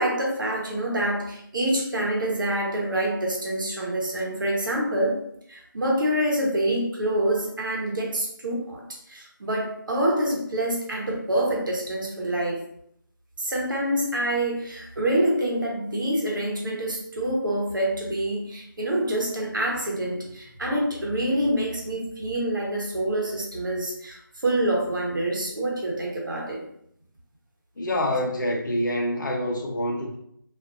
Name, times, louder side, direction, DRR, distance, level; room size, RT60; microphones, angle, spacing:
voice 1, 0.0-5.2 5.5-12.6 13.4-26.6, right 1 dB, 65° right, -2 dB, 1.0 m, -26 dB
voice 2, 27.8-30.2, left 1 dB, 60° left, 0 dB, 0.7 m, -26 dB
2.6 x 2.5 x 2.6 m, 0.71 s
figure-of-eight pair, 160°, 12 cm